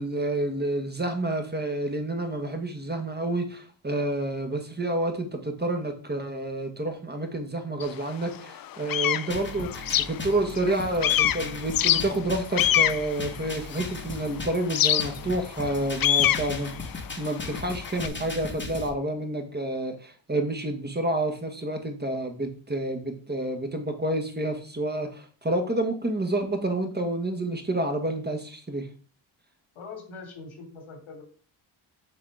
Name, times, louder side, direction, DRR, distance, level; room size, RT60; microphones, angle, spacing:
voice 1, 0.0-16.7 17.2-28.9, right 1 dB, 20° right, 4 dB, 1.8 m, -29 dB
sound 1, 7.8-7.9 8.4-10.7 11.0-14.1 14.7-18.1, left 11 dB, 45° left, 0.5 m, -25 dB
sound 2, 9.3-18.9, left 3 dB, 20° left, 1.7 m, -38 dB
voice 2, 29.7-31.2, left 4 dB, 75° left, 2 dB, 3.2 m, -42 dB
6.9 x 4.3 x 5.0 m, 0.40 s
cardioid pair, 70°, 49 cm